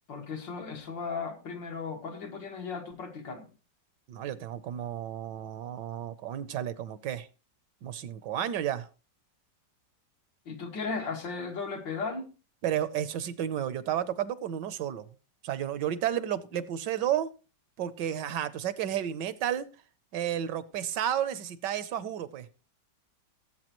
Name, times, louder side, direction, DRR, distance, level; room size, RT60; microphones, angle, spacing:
voice 1, 0.1-3.5 10.5-12.2, left 4 dB, 85° left, 3 dB, 2.7 m, -36 dB
voice 2, 4.1-7.3 7.8-8.9 12.6-15.0 15.4-17.3 17.8-19.7 20.1-22.5, right 10 dB, 75° right, 15 dB, 1.4 m, -32 dB
18.0 x 8.1 x 3.0 m, 0.33 s
omnidirectional pair, 1.9 m